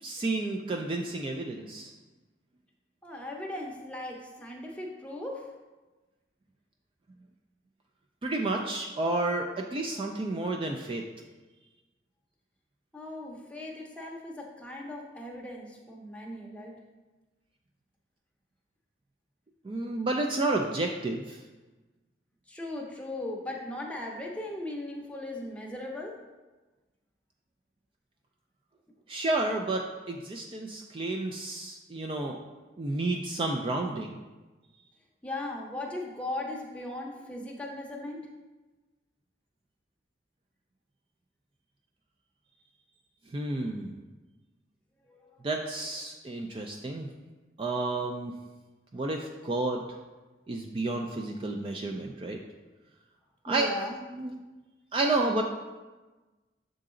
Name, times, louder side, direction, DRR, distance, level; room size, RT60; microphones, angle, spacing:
voice 1, 0.0-1.9 8.2-11.0 19.6-21.4 29.1-32.4 32.8-34.2 43.3-44.0 45.4-47.1 47.6-48.3 48.9-50.0 50.5-52.4 53.4-54.4 54.9-55.4, right 2 dB, 30° right, 2 dB, 0.3 m, -31 dB
voice 2, 3.0-5.4 12.9-16.7 22.5-26.2 35.2-38.3 45.1-45.3 53.5-54.0, left 1 dB, 5° left, -1 dB, 0.7 m, -38 dB
6.6 x 3.9 x 3.7 m, 1.2 s
head